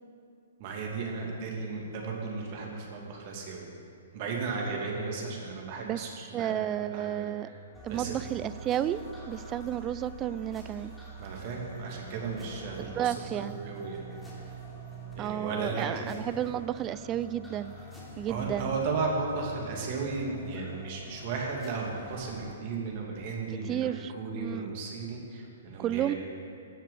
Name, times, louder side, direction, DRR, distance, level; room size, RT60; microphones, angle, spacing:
voice 1, 0.6-3.7 4.1-7.3 7.9-8.2 11.2-14.1 15.2-16.2 18.3-26.2, right 4 dB, 40° right, -1 dB, 2.6 m, -35 dB
voice 2, 6.3-7.5 7.8-10.9 12.8-13.6 15.2-17.7 18.2-18.8 23.7-24.7 25.8-26.1, right 11 dB, 25° right, 14 dB, 0.4 m, -32 dB
sound 1, 7.7-22.5, right 1 dB, 5° left, 3.4 m, -45 dB
15.0 x 7.4 x 6.8 m, 2.4 s
figure-of-eight pair, 115°, 0 cm